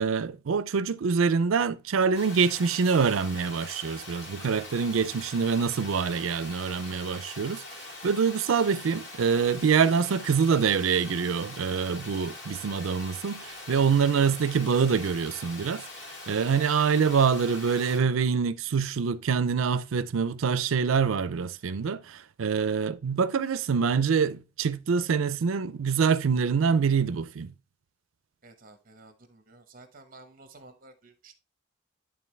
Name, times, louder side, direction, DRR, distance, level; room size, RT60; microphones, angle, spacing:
voice 1, 0.0-15.9 16.3-27.5, right 6 dB, 90° right, 0.5 m, -25 dB
Water, 2.1-18.0, left 2 dB, 65° left, 2.5 m, -43 dB
voice 2, 28.4-31.3, right 2 dB, 45° right, 1.1 m, -52 dB
11.0 x 3.7 x 3.3 m
head